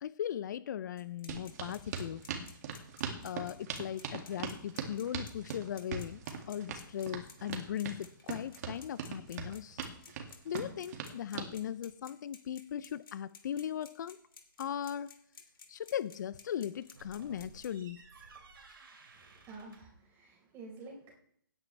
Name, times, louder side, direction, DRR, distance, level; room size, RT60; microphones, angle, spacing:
voice 1, 0.0-2.2 3.2-6.2 6.5-9.8 10.4-14.2 14.6-15.1 15.7-18.0, left 10 dB, 55° left, 17 dB, 0.5 m, -38 dB
sound 1, 1.0-17.7, left 5 dB, 80° left, 2.9 m, -54 dB
sound 2, 1.3-11.5, right 6 dB, 45° right, 2.2 m, -40 dB
sound 3, 16.7-20.0, right 3 dB, 80° right, 3.0 m, -55 dB
voice 2, 19.2-21.1, right 3 dB, 20° right, -1 dB, 4.3 m, -50 dB
17.0 x 9.8 x 3.3 m, 0.65 s
hypercardioid pair, 145°, 12 cm